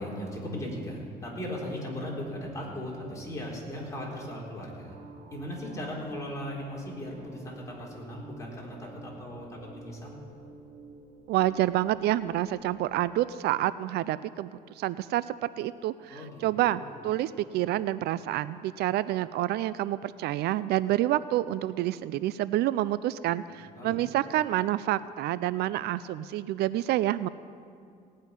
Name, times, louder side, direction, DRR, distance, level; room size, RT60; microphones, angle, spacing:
voice 1, 0.0-4.9 5.3-10.2 16.1-16.9 23.5-24.0, left 1 dB, 20° left, -4 dB, 4.0 m, -38 dB
sound 1, 1.6-13.0, right 4 dB, 90° right, 2.1 m, -51 dB
voice 2, 11.3-14.5 14.8-27.3, right 14 dB, 75° right, 16 dB, 0.4 m, -28 dB
17.5 x 6.4 x 9.6 m, 2.3 s
cardioid pair, 110°, 17 cm